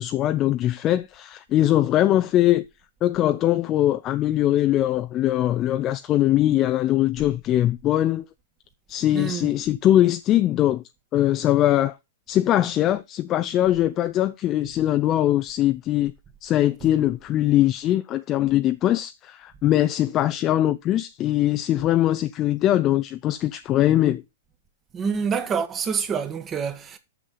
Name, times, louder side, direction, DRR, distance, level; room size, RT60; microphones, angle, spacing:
voice 1, 0.0-2.6 3.0-8.2 8.9-10.8 11.1-11.9 12.3-16.1 16.4-24.2, left 13 dB, 30° left, 0.4 m, -21 dB
voice 2, 9.1-9.5 16.8-16.9 24.9-27.0, right 6 dB, 20° right, 1.2 m, -27 dB
6.3 x 6.3 x 5.6 m
hypercardioid pair, 140°, 0 cm